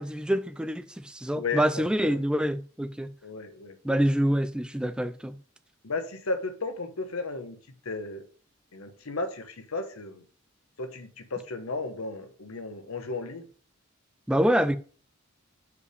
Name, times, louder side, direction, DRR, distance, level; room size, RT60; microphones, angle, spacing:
voice 1, 0.0-3.1 3.8-5.4 14.3-14.8, equal, 5° right, 0.3 m, -26 dB
voice 2, 3.2-3.8 5.8-7.6 7.8-8.2 8.7-10.2 10.8-13.5, left 3 dB, 90° left, 1.0 m, -34 dB
5.1 x 4.9 x 4.9 m
head